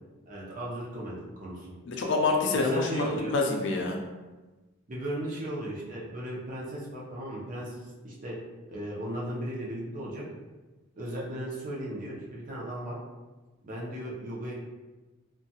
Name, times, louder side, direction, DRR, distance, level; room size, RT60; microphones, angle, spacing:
voice 1, 0.3-1.7 2.5-3.3 4.9-8.4 8.7-10.2 11.0-12.9 13.6-14.5, right 1 dB, 40° right, -4 dB, 0.6 m, -36 dB
voice 2, 1.9-4.0, left 3 dB, 55° left, 1 dB, 0.4 m, -27 dB
2.7 x 2.3 x 2.7 m, 1.2 s
head